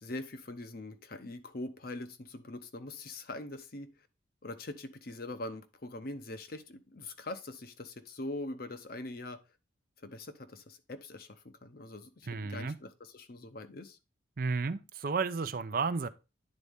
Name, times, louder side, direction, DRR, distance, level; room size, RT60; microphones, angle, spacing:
voice 1, 0.0-3.9 4.4-9.4 10.0-14.0, left 2 dB, 50° left, 0.8 m, -43 dB
voice 2, 12.3-12.8 14.4-16.1, right 4 dB, 45° right, 0.5 m, -32 dB
9.7 x 4.1 x 3.5 m
head